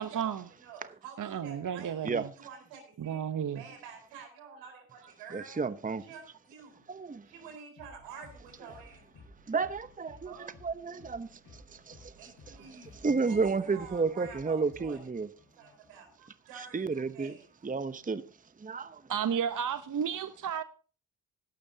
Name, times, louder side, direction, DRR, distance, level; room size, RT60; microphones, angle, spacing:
voice 1, 0.0-0.5 1.2-2.3 3.0-3.6 19.1-20.6, right 8 dB, 45° right, 0.9 m, -32 dB
voice 2, 0.6-3.2 3.5-5.6 6.0-6.8 7.2-9.1 10.2-10.5 12.2-12.9 13.2-15.0 15.6-17.5, right 6 dB, 85° right, 4.7 m, -49 dB
voice 3, 5.3-6.0 6.9-7.2 9.5-12.6 13.0-15.3 16.7-17.3 17.6-18.2 18.6-19.0, right 4 dB, 20° right, 0.9 m, -32 dB
sound 1, 7.8-16.1, left 2 dB, 60° left, 7.1 m, -56 dB
17.0 x 12.0 x 2.8 m
hypercardioid pair, 45°, 42 cm